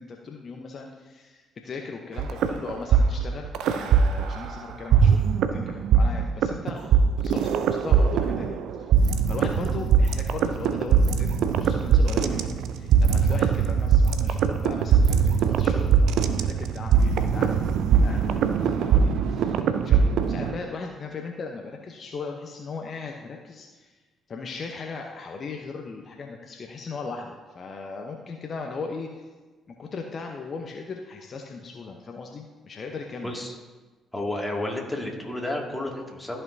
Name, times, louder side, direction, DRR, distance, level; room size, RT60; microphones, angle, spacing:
voice 1, 0.0-5.2 5.5-8.6 9.3-19.6 19.8-23.9 24.3-29.2 29.7-33.3, left 4 dB, 50° left, 2 dB, 0.8 m, -38 dB
sound 1, 2.2-4.5 4.9-20.6, right 7 dB, 65° right, 0.5 m, -21 dB
voice 2, 33.2-33.6 34.1-36.4, left 1 dB, 10° left, -1 dB, 2.3 m, -31 dB
13.5 x 5.5 x 2.7 m, 1.3 s
hypercardioid pair, 45°, 0 cm